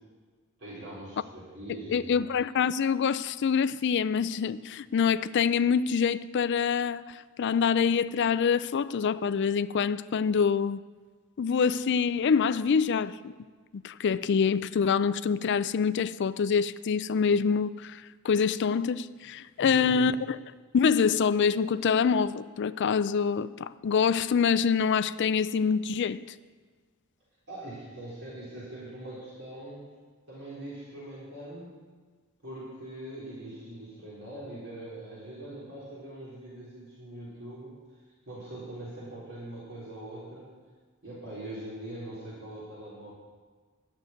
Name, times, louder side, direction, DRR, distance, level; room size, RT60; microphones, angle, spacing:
voice 1, 0.6-2.2 19.6-20.1 27.5-29.9 30.3-31.8 32.4-37.8 38.3-40.5 41.0-43.2, right 1 dB, 60° right, 3.8 m, -42 dB
voice 2, 1.9-10.8 11.4-13.3 13.7-20.1 20.7-26.2, left 6 dB, 55° left, 0.4 m, -26 dB
12.0 x 6.7 x 9.2 m
head